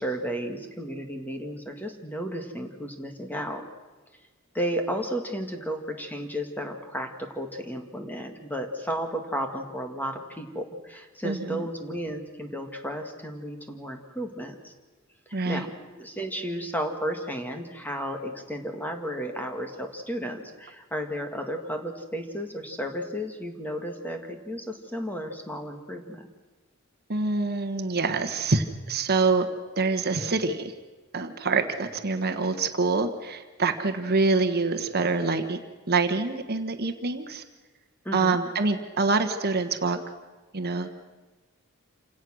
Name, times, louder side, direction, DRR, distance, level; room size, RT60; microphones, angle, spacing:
voice 1, 0.0-3.6 4.5-14.7 15.3-26.3 38.0-38.4, equal, 10° left, 4 dB, 1.9 m, -33 dB
voice 2, 11.2-11.6 15.3-15.6 27.1-29.5 29.8-30.7 31.1-35.6 35.9-37.4 38.1-40.0 40.5-40.9, right 3 dB, 50° right, 7 dB, 1.3 m, -25 dB
28.0 x 17.5 x 6.3 m, 1.3 s
head